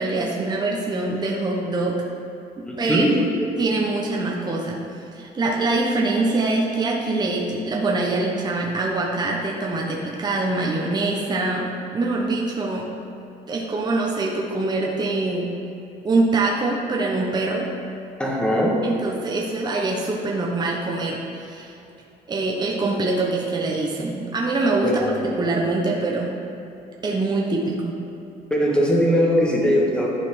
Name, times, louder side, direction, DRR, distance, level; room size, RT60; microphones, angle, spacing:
voice 1, 0.0-2.0 2.6-3.0 3.6-12.9 13.5-15.5 16.0-17.7 18.8-21.7 22.3-24.9 25.4-26.3 27.0-27.9, right 2 dB, 25° right, -2 dB, 0.9 m, -24 dB
voice 2, 2.6-3.2 18.2-18.8 24.8-25.2 28.5-30.1, equal, 5° left, -3 dB, 1.5 m, -20 dB
11.5 x 4.3 x 5.0 m, 2.9 s
cardioid pair, 110°, 17 cm